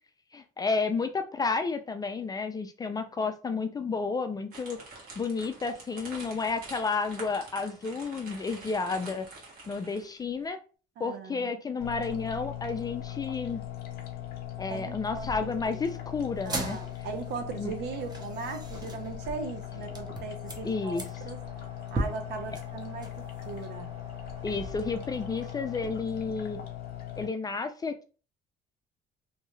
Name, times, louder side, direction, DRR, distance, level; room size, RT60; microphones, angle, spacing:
voice 1, 0.3-4.8 5.2-9.3 9.7-10.6 11.0-13.6 14.6-16.8 17.6-17.7 20.6-21.0 24.4-26.6 27.2-28.0, left 4 dB, 20° left, 0.4 m, -31 dB
sound 1, 4.5-10.2, right 3 dB, 60° right, 1.3 m, -46 dB
voice 2, 11.0-11.5 14.7-15.8 16.5-21.4 21.9-23.9, right 5 dB, 80° right, 0.7 m, -39 dB
sound 2, 11.8-27.3, left 11 dB, 60° left, 0.8 m, -40 dB
sound 3, 16.4-25.9, right 2 dB, 25° right, 0.7 m, -40 dB
2.7 x 2.2 x 3.1 m
cardioid pair, 110°, 17 cm